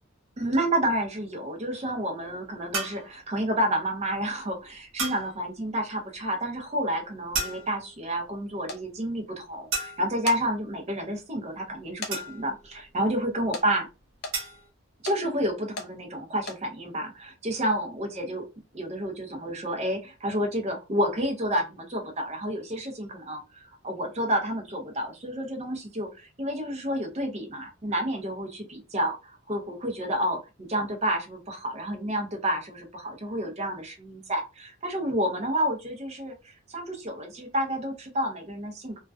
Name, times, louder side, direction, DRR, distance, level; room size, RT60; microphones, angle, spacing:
voice 1, 0.4-13.9 15.0-18.5 18.7-39.0, equal, 30° right, 3 dB, 0.6 m, -30 dB
sound 1, 2.7-3.1 5.0-5.3 7.3-7.9 9.7-10.2 12.1-12.6 14.3-14.7, right 3 dB, 75° right, 0.8 m, -32 dB
sound 2, 8.7-8.8 10.0-10.4 11.0-11.1 12.0-12.2 12.5-12.6 13.5-13.7 14.2-14.4 15.1-15.2 15.8-15.9 16.4-16.6, left 3 dB, 50° left, 0.5 m, -35 dB
2.3 x 2.2 x 2.4 m, 0.29 s
head